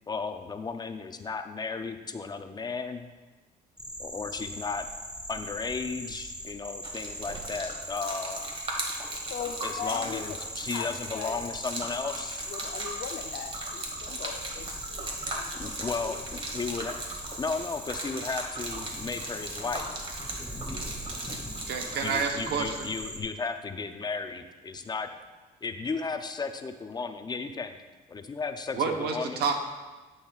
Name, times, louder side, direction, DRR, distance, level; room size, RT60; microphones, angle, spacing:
voice 1, 0.1-3.1 4.0-4.9 5.3-8.5 9.6-12.4 14.1-14.2 15.5-16.9 17.4-19.9 20.6-20.8 21.0-21.1 22.0-25.1 25.6-27.8 28.1-29.5, left 4 dB, 25° left, 8 dB, 0.5 m, -34 dB
sound 1, 3.8-23.2, equal, 5° right, 0.9 m, -41 dB
Gurgling / Liquid, 6.8-22.2, right 2 dB, 30° right, 1.4 m, -38 dB
voice 2, 9.3-11.3 12.5-15.5 16.0-16.2, left 8 dB, 65° left, 7 dB, 0.6 m, -39 dB
voice 3, 21.7-22.9 28.8-29.5, right 5 dB, 70° right, 4 dB, 1.0 m, -29 dB
10.0 x 7.9 x 2.4 m, 1.3 s
cardioid pair, 110°, 17 cm